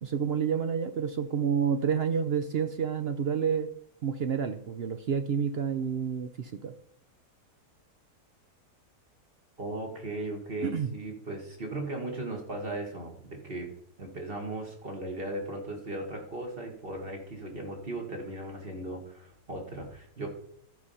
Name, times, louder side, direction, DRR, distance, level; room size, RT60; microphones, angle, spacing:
voice 1, 0.0-3.7 4.0-6.7 10.6-10.9, right 7 dB, 65° right, 10 dB, 0.6 m, -29 dB
voice 2, 9.6-13.7 14.0-20.3, right 2 dB, 35° right, 2 dB, 1.9 m, -37 dB
12.5 x 5.0 x 5.6 m, 0.67 s
omnidirectional pair, 1.7 m